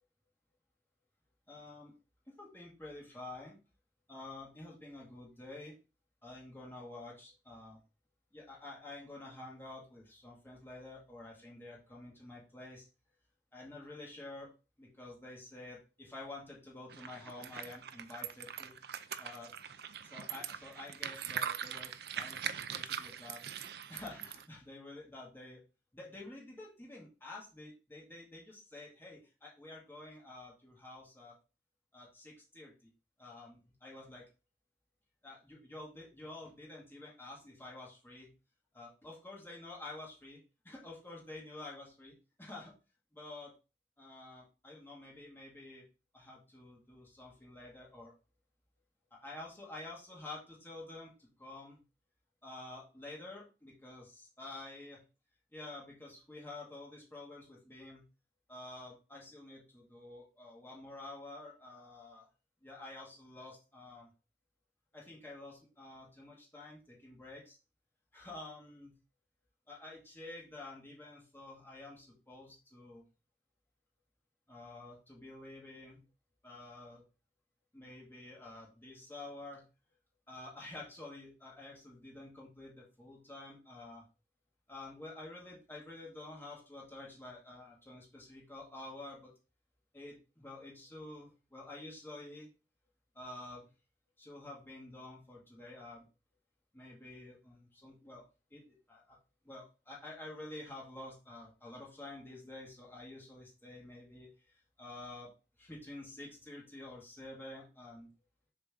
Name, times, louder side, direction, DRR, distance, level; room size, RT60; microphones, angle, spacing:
voice 1, 1.5-1.9 2.4-3.6 4.1-5.7 6.2-7.8 8.3-12.9 13.5-14.5 14.8-18.8 19.2-19.5 20.0-23.4 23.9-25.6 25.9-31.3 31.9-32.9 33.2-34.3 35.2-38.3 38.7-40.4 40.6-42.7 43.1-43.5 44.0-45.8 46.1-48.1 49.1-51.8 52.4-55.0 55.5-58.0 58.5-62.3 62.6-64.1 64.9-67.6 68.1-68.9 69.7-73.0 74.5-76.0 76.4-77.0 77.7-79.6 80.3-84.0 84.7-89.3 89.9-92.5 93.1-93.7 94.2-96.0 96.7-98.2 98.5-99.2 99.4-105.3 105.6-108.1, left 2 dB, 10° left, -4 dB, 2.0 m, -49 dB
sound 1, 16.9-24.4, right 8 dB, 65° right, 0.5 m, -42 dB
7.1 x 3.9 x 3.7 m, 0.31 s
head